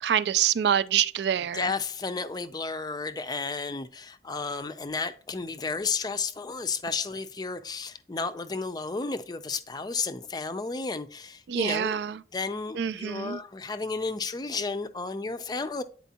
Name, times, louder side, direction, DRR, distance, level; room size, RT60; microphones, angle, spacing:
voice 1, 0.0-1.7 11.5-12.2 12.8-13.4, right 9 dB, 70° right, 0.3 m, -26 dB
voice 2, 1.3-12.0 12.3-15.8, left 4 dB, 25° left, 0.4 m, -32 dB
9.2 x 4.4 x 2.8 m
head